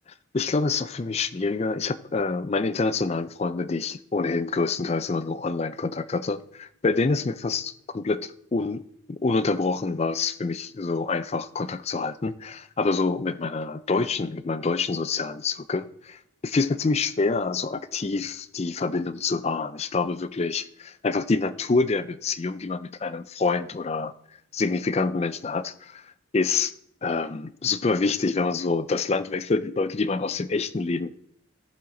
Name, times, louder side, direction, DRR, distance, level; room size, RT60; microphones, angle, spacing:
voice 1, 0.3-24.1 24.5-26.1 26.3-26.7 27.0-31.1, left 4 dB, 30° left, 0.4 m, -26 dB
14.5 x 7.2 x 3.8 m
head